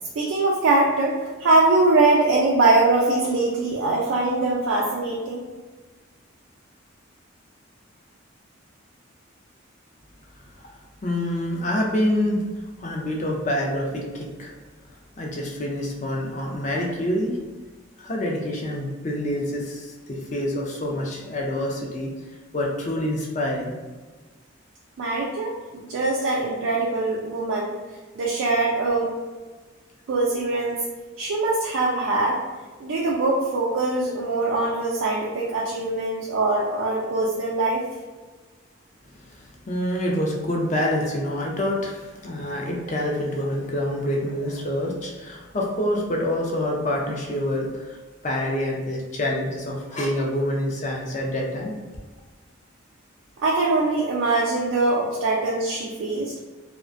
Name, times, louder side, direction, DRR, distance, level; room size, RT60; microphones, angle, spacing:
voice 1, 0.2-5.4 25.0-27.8 28.2-29.1 30.1-30.8 31.2-32.4 32.8-37.8 53.4-56.3, right 2 dB, 80° right, -4 dB, 0.4 m, -22 dB
voice 2, 11.0-12.4 12.8-14.5 15.2-17.4 18.0-22.1 22.5-23.7 39.3-48.0 48.2-51.7, left 1 dB, 35° left, -1 dB, 0.4 m, -26 dB
2.4 x 2.1 x 2.4 m, 1.3 s
head